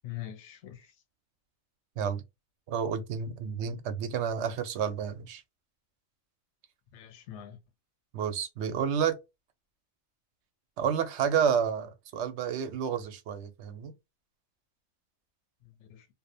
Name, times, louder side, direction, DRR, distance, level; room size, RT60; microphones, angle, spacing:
voice 1, 0.0-0.9 6.9-7.6 15.6-16.1, left 12 dB, 65° left, 0.8 m, -43 dB
voice 2, 2.7-5.4 8.1-9.2 10.8-13.9, right 7 dB, 65° right, 0.8 m, -30 dB
2.6 x 2.0 x 2.5 m
omnidirectional pair, 1.4 m